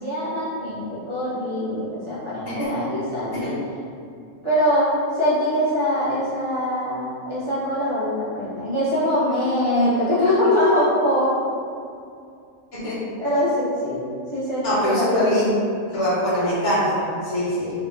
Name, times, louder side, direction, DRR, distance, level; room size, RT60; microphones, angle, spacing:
voice 1, 0.0-3.6 4.4-4.9 5.2-11.4 13.2-15.4, left 1 dB, 30° right, -12 dB, 0.6 m, -23 dB
voice 2, 12.7-13.1 14.6-15.5 15.9-17.7, equal, 60° left, -8 dB, 1.3 m, -23 dB
2.9 x 2.8 x 3.5 m, 2.4 s
omnidirectional pair, 1.4 m